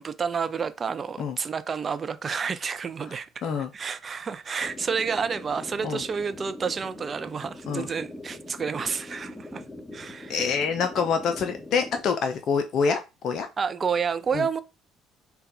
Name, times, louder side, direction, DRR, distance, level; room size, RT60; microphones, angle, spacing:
voice 1, 0.0-3.3 3.7-9.6 9.9-10.5 13.6-14.6, right 6 dB, 35° right, 0.4 m, -30 dB
sound 1, 4.6-12.0, left 2 dB, 10° left, 1.5 m, -42 dB
voice 2, 10.3-13.0 13.2-13.5 14.3-14.5, left 6 dB, 55° left, 0.4 m, -26 dB
4.0 x 2.3 x 3.9 m
hypercardioid pair, 55°, 0 cm